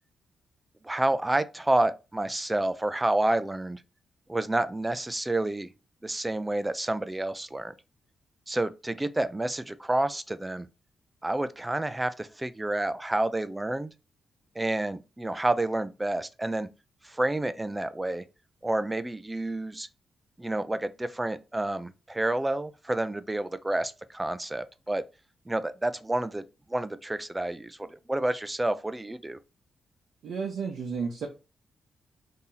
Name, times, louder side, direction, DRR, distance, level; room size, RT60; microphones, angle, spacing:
voice 1, 0.8-3.8 4.3-5.7 6.0-7.7 8.5-10.7 11.2-13.9 14.6-16.7 17.0-18.2 18.6-19.9 20.4-25.0 25.5-26.4 26.7-29.4, right 1 dB, 15° right, 0.3 m, -29 dB
voice 2, 30.2-31.3, right 5 dB, 80° right, 0.7 m, -32 dB
2.8 x 2.7 x 3.8 m
cardioid pair, 85°, 0 cm